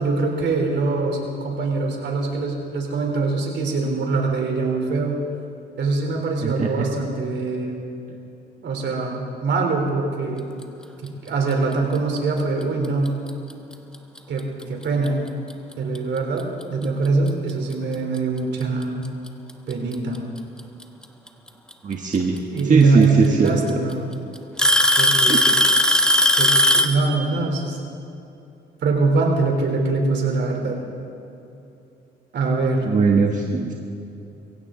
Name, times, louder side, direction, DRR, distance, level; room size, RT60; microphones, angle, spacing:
voice 1, 0.0-5.2 5.8-7.8 8.6-10.5 11.0-13.2 14.3-15.2 15.8-19.1 19.7-20.2 22.5-24.0 25.0-25.4 26.4-27.8 28.8-30.8 32.3-32.9, right 3 dB, 65° right, 1 dB, 3.5 m, -23 dB
Alarm / Tick-tock, 13.1-13.3 14.2-14.3 15.1-15.2 16.8-16.9 18.2-18.3 19.5-19.9 21.7-21.8 23.0-23.1 23.5-23.9 24.6-27.0, left 1 dB, 5° left, 1.2 m, -17 dB
voice 2, 21.8-22.4 22.6-23.8 25.3-25.6 32.8-33.7, right 5 dB, 40° right, 1 dB, 1.4 m, -20 dB
22.5 x 16.5 x 3.8 m, 2.8 s
cardioid pair, 90°, 20 cm